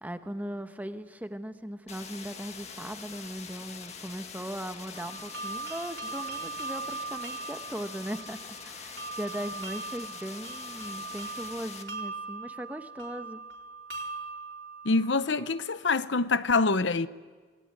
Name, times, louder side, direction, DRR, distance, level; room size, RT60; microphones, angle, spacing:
voice 1, 0.0-13.4, equal, 10° right, 1.0 m, -38 dB
sound 1, 1.9-11.8, left 6 dB, 35° left, 1.9 m, -44 dB
sound 2, 5.0-15.8, right 3 dB, 70° right, 4.4 m, -40 dB
voice 2, 14.8-17.1, left 3 dB, 70° left, 0.8 m, -25 dB
28.0 x 19.5 x 9.8 m
head